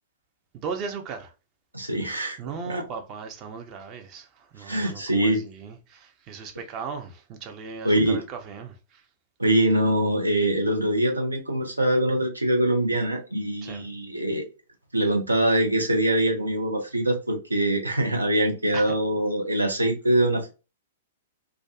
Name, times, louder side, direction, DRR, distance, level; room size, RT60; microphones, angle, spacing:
voice 1, 0.5-1.3 2.4-9.0 13.6-13.9 18.7-18.9, right 5 dB, 30° right, 0.5 m, -37 dB
voice 2, 1.7-2.4 2.7-2.8 4.6-5.4 7.8-8.2 9.4-14.5 14.9-20.5, right 1 dB, 85° right, 0.6 m, -23 dB
2.4 x 2.2 x 2.4 m
figure-of-eight pair, 105°, 0 cm